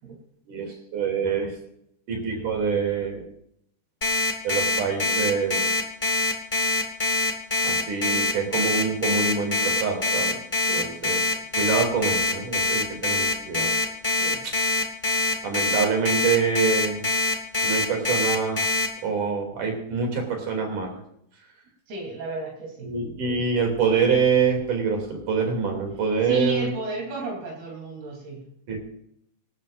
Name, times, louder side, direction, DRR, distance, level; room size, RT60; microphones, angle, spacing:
voice 1, 0.5-1.5 2.1-3.2 4.4-5.7 7.6-10.4 10.7-11.2 11.6-13.7 15.4-17.0 17.6-18.6 19.0-20.9 22.8-26.7 28.7-28.8, right 5 dB, 55° right, 2 dB, 4.2 m, -25 dB
Alarm, 4.0-18.9, left 2 dB, 20° left, 1.4 m, -24 dB
voice 2, 10.7-11.3 14.2-14.5 21.9-23.0 26.0-28.5, right 2 dB, 75° right, -1 dB, 5.3 m, -33 dB
26.0 x 12.5 x 2.6 m, 0.75 s
omnidirectional pair, 4.4 m